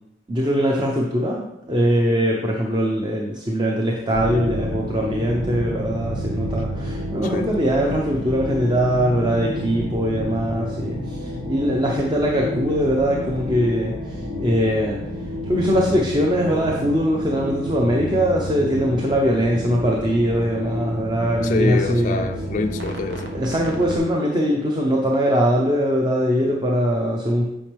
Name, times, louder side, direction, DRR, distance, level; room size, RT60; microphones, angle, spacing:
voice 1, 0.3-22.3 23.3-27.5, equal, 25° right, 0.8 m, -21 dB
sound 1, 4.1-24.0, equal, 80° right, 1.0 m, -30 dB
voice 2, 21.4-23.3, left 3 dB, 45° left, 0.4 m, -25 dB
9.1 x 5.3 x 3.4 m
head